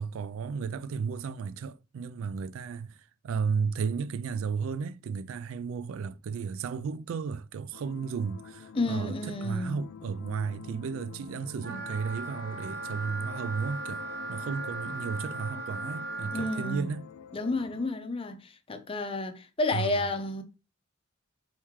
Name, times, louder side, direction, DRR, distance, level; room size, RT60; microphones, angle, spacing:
voice 1, 0.0-3.0 3.2-17.0 19.7-20.0, right 5 dB, 75° right, 0.3 m, -34 dB
sound 1, 7.7-17.9, left 7 dB, 85° left, 0.4 m, -47 dB
voice 2, 8.7-9.8 16.3-16.9 17.3-20.4, left 2 dB, 25° left, 0.5 m, -31 dB
Wind instrument woodwind instrument, 11.6-16.8, right 3 dB, 55° right, 1.0 m, -38 dB
4.3 x 3.1 x 3.6 m
head